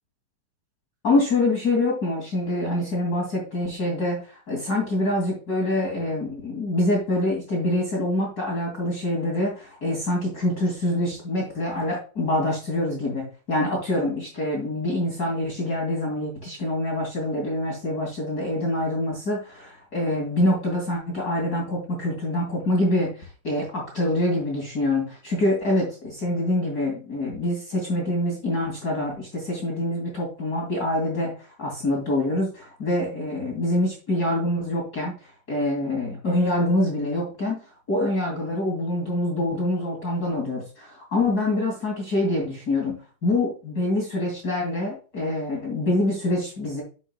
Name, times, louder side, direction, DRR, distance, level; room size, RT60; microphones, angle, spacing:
voice 1, 1.0-37.6 37.9-43.0 43.2-46.8, left 1 dB, 30° left, -2 dB, 2.8 m, -25 dB
8.5 x 7.6 x 2.3 m, 0.35 s
omnidirectional pair, 3.7 m